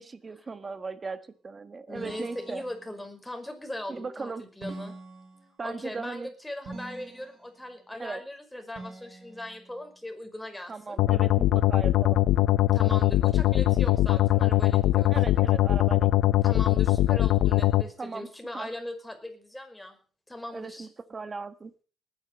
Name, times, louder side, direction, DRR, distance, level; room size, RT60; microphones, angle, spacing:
voice 1, 0.0-2.6 3.9-4.4 5.6-6.3 8.0-8.2 10.7-12.2 15.1-16.4 18.0-18.3 18.5-18.7 20.5-21.7, right 4 dB, 30° right, 12 dB, 1.6 m, -38 dB
voice 2, 1.9-5.0 5.6-11.0 12.7-15.2 16.4-20.0 20.3-20.9, left 1 dB, 5° left, 5 dB, 5.3 m, -39 dB
sound 1, 2.0-3.1 4.6-5.8 6.7-7.5 8.8-9.7, right 3 dB, 65° right, 6.8 m, -44 dB
sound 2, 11.0-17.8, left 15 dB, 90° left, 0.7 m, -22 dB
19.5 x 10.0 x 6.6 m, 0.41 s
cardioid pair, 90°, 0 cm